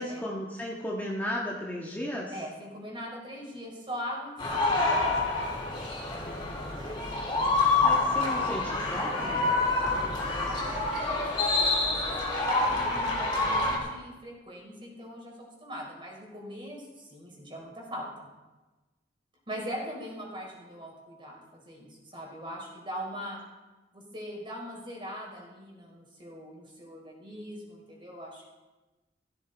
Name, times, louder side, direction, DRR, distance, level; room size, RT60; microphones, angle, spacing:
voice 1, 0.0-2.4 7.8-9.4, left 1 dB, 10° left, -4 dB, 1.7 m, -34 dB
voice 2, 2.3-4.8 6.8-7.0 10.4-18.3 19.5-23.4 23.9-28.5, equal, 30° right, -1 dB, 4.7 m, -41 dB
sound 1, 4.4-13.8, left 3 dB, 30° left, 3.6 m, -27 dB
15.5 x 14.0 x 4.1 m, 1.1 s
head